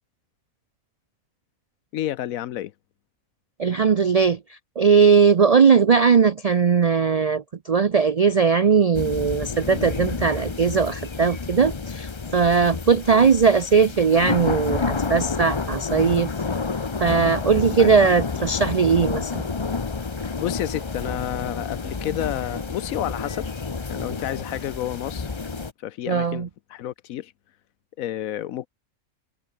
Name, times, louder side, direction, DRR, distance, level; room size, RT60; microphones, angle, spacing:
voice 1, 1.9-2.7 9.7-9.9 13.1-13.3 17.8-17.9 18.4-18.5 20.4-23.5 23.9-25.3 25.8-27.3 28.0-28.7, left 12 dB, 75° left, 1.1 m, -30 dB
voice 2, 3.6-16.3 17.0-19.5 26.1-26.5, right 5 dB, 75° right, 0.3 m, -19 dB
sound 1, 8.9-25.7, left 4 dB, 25° left, 0.7 m, -29 dB
omnidirectional pair, 1.5 m